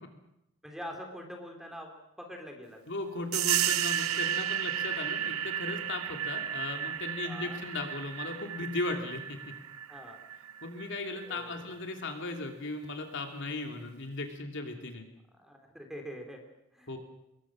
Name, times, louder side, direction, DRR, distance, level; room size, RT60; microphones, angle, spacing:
voice 1, 0.6-2.8 7.2-7.6 9.9-10.2 11.2-11.8 15.4-16.4 16.7-16.9, equal, ahead, 2 dB, 3.6 m, -44 dB
voice 2, 2.9-9.4 10.6-15.0 16.9-17.0, left 2 dB, 55° left, 4 dB, 2.9 m, -37 dB
sound 1, 3.3-11.6, right 10 dB, 75° right, 0.8 m, -33 dB
26.0 x 22.0 x 6.3 m, 0.84 s
head